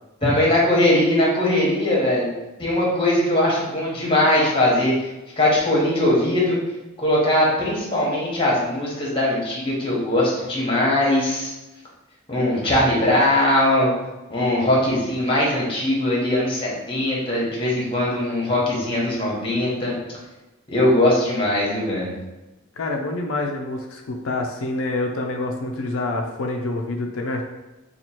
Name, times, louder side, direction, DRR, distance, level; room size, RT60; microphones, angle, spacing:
voice 1, 0.2-2.3 2.6-4.9 5.4-6.6 7.0-11.5 12.3-13.9 14.3-19.9 20.7-22.1, left 1 dB, 25° left, -4 dB, 1.1 m, -20 dB
voice 2, 22.8-27.4, left 2 dB, 80° left, 3 dB, 0.4 m, -27 dB
3.0 x 2.3 x 4.2 m, 1.1 s
head